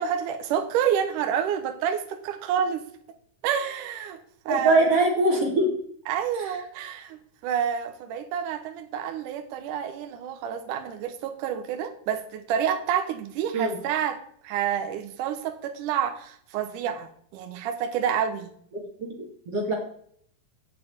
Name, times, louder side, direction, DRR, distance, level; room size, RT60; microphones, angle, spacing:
voice 1, 0.0-2.9 3.4-4.2 4.5-4.9 6.1-18.5, right 8 dB, 70° right, 6 dB, 2.2 m, -28 dB
voice 2, 4.5-5.8 6.4-6.6 13.5-13.8 18.7-19.7, right 2 dB, 45° right, 0 dB, 2.9 m, -23 dB
9.7 x 6.7 x 8.3 m, 0.63 s
omnidirectional pair, 4.3 m